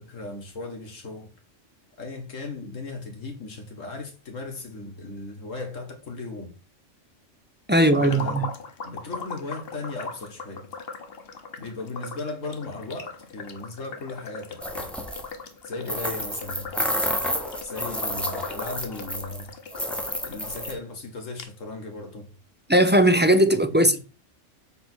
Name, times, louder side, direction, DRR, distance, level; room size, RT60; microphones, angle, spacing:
voice 1, 0.1-1.3 2.0-6.5 7.8-8.4 8.8-10.6 11.6-14.9 15.6-16.8 17.6-19.5 20.2-22.3 23.7-24.0, left 3 dB, 80° left, 2.2 m, -37 dB
voice 2, 7.7-8.5 22.7-24.0, right 1 dB, 15° right, 0.4 m, -18 dB
sound 1, 7.9-20.7 21.0-21.1 21.4-21.5, left 5 dB, 55° left, 1.2 m, -39 dB
sound 2, 14.6-15.3 15.9-19.4 19.7-20.7, equal, ahead, 0.9 m, -30 dB
8.1 x 3.4 x 6.2 m
omnidirectional pair, 1.3 m